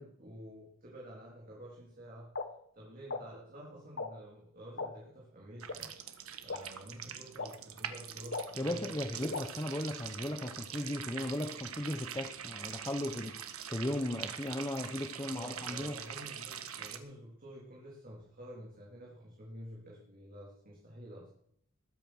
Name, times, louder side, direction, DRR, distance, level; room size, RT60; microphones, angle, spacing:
voice 1, 0.0-2.3 2.7-5.9 6.4-8.8 15.3-21.3, equal, 40° right, -4 dB, 3.6 m, -49 dB
sound 1, 2.3-2.4 3.1-3.2 4.0-4.1 4.8-4.9 5.7-5.8 6.5-6.6 7.4-7.5 8.3-8.4 9.3-9.4, left 3 dB, 55° left, 1.4 m, -36 dB
sound 2, 5.6-17.0, right 8 dB, 90° right, 1.5 m, -44 dB
voice 2, 8.6-13.4 13.7-16.0, left 1 dB, 15° left, 6 dB, 1.0 m, -36 dB
20.5 x 9.1 x 6.4 m, 0.70 s
head